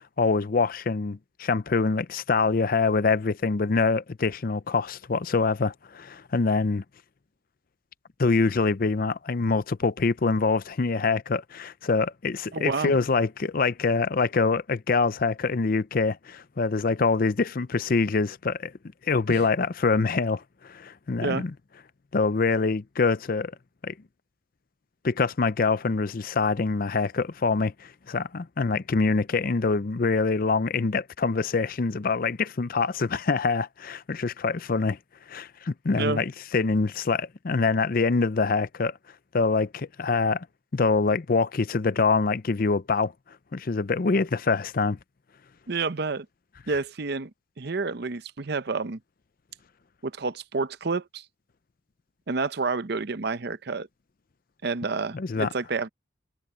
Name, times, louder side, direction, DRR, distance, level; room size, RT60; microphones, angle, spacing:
voice 1, 0.2-6.8 8.2-18.7 19.0-21.5 22.1-23.5 23.8-23.9 25.0-35.0 35.3-39.0 39.3-40.5 40.7-43.1 43.5-45.0 55.1-55.5, left 4 dB, 45° left, 0.5 m, -25 dB
voice 2, 12.5-12.9 19.3-19.4 21.2-21.4 36.0-36.2 45.7-46.3 46.7-47.3 47.6-49.0 50.0-51.2 52.3-53.9 54.6-55.9, right 4 dB, 55° right, 0.7 m, -29 dB
head